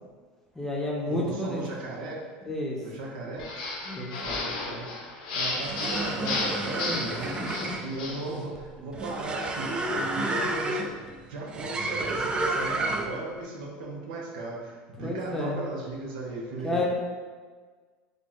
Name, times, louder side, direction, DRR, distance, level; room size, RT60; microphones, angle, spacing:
voice 1, 0.5-1.6 2.4-2.8 3.9-4.1 6.9-7.0 7.4-7.7 15.0-15.6 16.6-16.9, left 2 dB, 10° left, -2 dB, 0.7 m, -30 dB
voice 2, 1.1-2.2 2.8-3.5 4.2-4.8 5.3-7.4 7.8-10.9 11.3-16.9, right 2 dB, 85° right, -2 dB, 0.9 m, -36 dB
sound 1, 3.4-8.3, left 3 dB, 85° left, 0.8 m, -33 dB
sound 2, 5.5-13.3, right 2 dB, 20° right, 0.3 m, -31 dB
3.9 x 2.3 x 3.7 m, 1.5 s
supercardioid pair, 125°, 5 cm